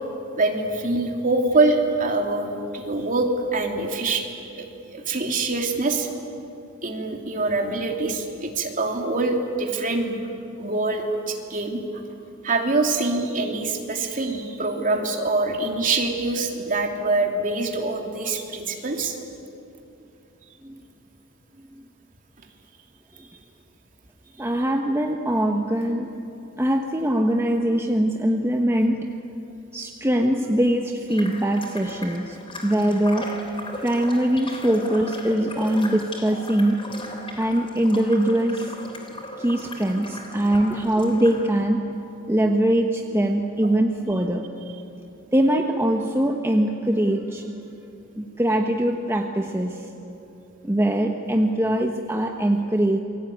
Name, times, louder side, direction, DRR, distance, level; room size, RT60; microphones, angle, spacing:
voice 1, 0.3-4.2 4.6-4.7 4.9-6.1 6.8-10.2 10.6-11.8 12.4-19.1, right 2 dB, 40° right, 2 dB, 3.1 m, -24 dB
voice 2, 24.4-26.2 26.6-29.1 29.7-32.4 32.6-33.3 33.8-36.9 37.4-38.7 39.4-42.0 42.3-44.7 45.3-47.4 48.2-49.9 50.6-53.0, right 1 dB, 10° right, 2 dB, 1.2 m, -22 dB
sound 1, 31.1-41.5, left 1 dB, 25° left, 3.4 m, -38 dB
28.0 x 23.0 x 9.3 m, 2.8 s
head